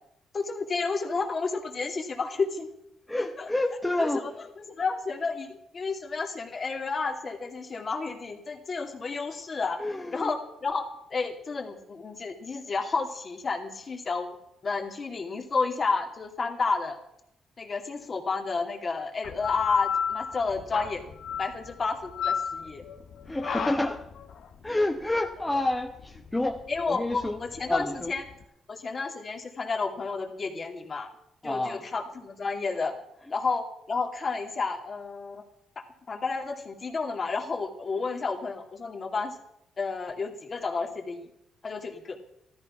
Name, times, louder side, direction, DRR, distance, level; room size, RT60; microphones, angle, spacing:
voice 1, 0.3-2.7 3.2-3.5 4.0-4.3 4.6-9.8 10.1-10.8 11.1-14.3 14.6-17.0 17.6-21.0 21.4-22.8 26.7-28.3 28.7-31.1 31.4-32.9 33.3-35.4 36.1-39.3 39.8-41.3 41.6-42.2, left 4 dB, 40° left, 3 dB, 2.5 m, -31 dB
voice 2, 3.1-4.3 9.8-10.3 23.3-24.0 24.6-26.6 26.9-27.4 27.7-28.1 31.4-31.8, left 1 dB, 10° left, 4 dB, 1.0 m, -28 dB
sound 1, 19.2-28.4, left 8 dB, 65° left, 1.5 m, -34 dB
14.0 x 13.5 x 5.8 m, 0.79 s
cardioid pair, 90°, 0 cm